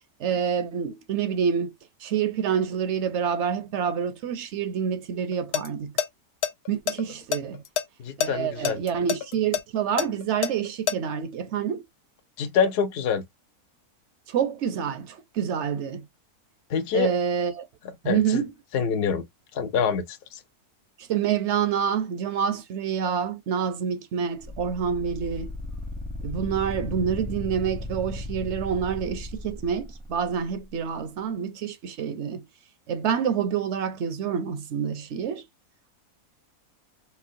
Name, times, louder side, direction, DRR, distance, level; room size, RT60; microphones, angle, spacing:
voice 1, 0.2-1.7 2.0-5.9 6.7-7.6 8.2-11.8 14.3-16.0 16.9-17.7 18.0-18.5 21.0-25.5 26.2-32.5 32.9-35.4, right 7 dB, 60° right, 0.8 m, -27 dB
sound 1, 5.3-5.7 6.0-6.1 6.4-7.8 8.2-8.3 8.7-10.9, left 10 dB, 90° left, 1.1 m, -26 dB
voice 2, 8.0-8.8 12.4-13.2 16.7-17.1 18.0-18.4 18.7-19.2 19.5-20.4, left 6 dB, 55° left, 0.7 m, -26 dB
sound 2, 24.4-30.6, left 1 dB, 5° left, 0.6 m, -36 dB
4.4 x 2.0 x 2.5 m
omnidirectional pair, 1.6 m